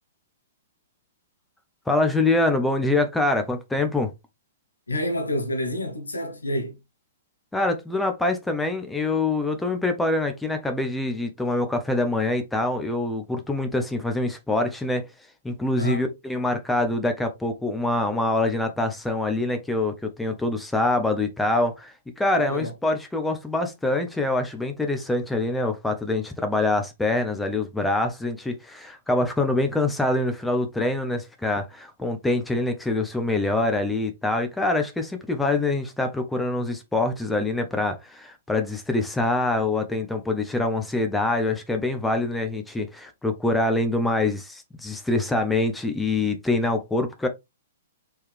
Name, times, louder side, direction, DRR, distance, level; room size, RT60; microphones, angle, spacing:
voice 1, 1.9-4.1 7.5-15.1 15.4-47.3, left 2 dB, 5° left, 0.8 m, -25 dB
voice 2, 4.9-6.8 15.8-16.0 22.3-22.7, equal, 85° left, 1.3 m, -28 dB
4.4 x 3.2 x 3.5 m
figure-of-eight pair, 115°, 0 cm